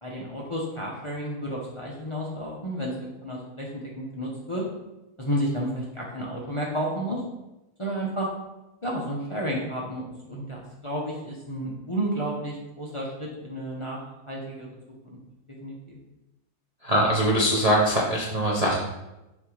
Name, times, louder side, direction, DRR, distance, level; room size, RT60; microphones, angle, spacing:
voice 1, 0.0-3.7 4.0-4.6 5.2-7.2 7.8-8.3 8.8-14.0 14.3-14.7 15.6-16.0, right 1 dB, 25° left, -4 dB, 0.7 m, -31 dB
voice 2, 16.8-18.9, right 1 dB, 35° right, -5 dB, 0.6 m, -22 dB
6.4 x 3.0 x 4.9 m, 0.97 s
omnidirectional pair, 1.7 m